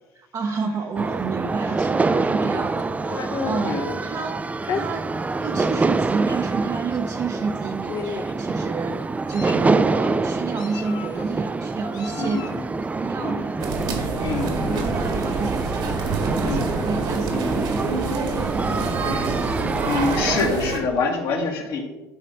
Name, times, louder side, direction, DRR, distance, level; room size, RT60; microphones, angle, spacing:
voice 1, 0.2-4.4 4.7-13.7 14.0-14.7 15.1-18.8, right 5 dB, 40° right, 3 dB, 0.9 m, -30 dB
sound 1, 1.0-20.5, right 3 dB, 15° right, 0.4 m, -26 dB
Meow, 2.3-4.0 4.6-4.8 5.7-5.8 6.2-6.4 7.4-7.5 7.9-8.4 9.0-9.7 10.6-11.3 11.9-12.6, left 6 dB, 50° left, 1.1 m, -33 dB
voice 2, 12.1-12.6 13.2-13.5 14.2-14.9 16.4-16.7 17.3-17.4 19.8-21.8, left 4 dB, 70° left, -1 dB, 2.3 m, -26 dB
sound 2, 13.6-20.8, right 3 dB, 65° right, 1.9 m, -27 dB
11.5 x 4.1 x 5.5 m, 1.1 s
supercardioid pair, 85°, 9 cm